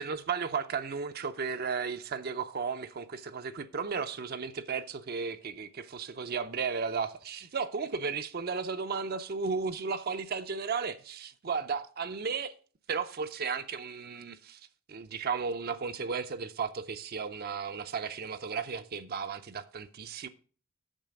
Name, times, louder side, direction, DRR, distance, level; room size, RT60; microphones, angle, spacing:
voice 1, 0.0-12.5 12.9-14.6 14.9-20.3, right 5 dB, 45° right, 0.5 m, -34 dB
9.0 x 6.5 x 5.0 m
head